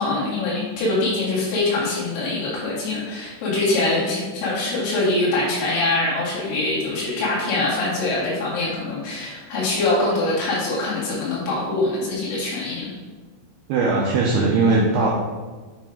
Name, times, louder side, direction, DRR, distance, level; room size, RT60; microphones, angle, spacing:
voice 1, 0.0-12.9, left 2 dB, 85° left, -7 dB, 4.9 m, -23 dB
voice 2, 13.7-15.1, right 3 dB, 85° right, -4 dB, 2.3 m, -19 dB
9.2 x 4.9 x 3.7 m, 1.3 s
omnidirectional pair, 5.6 m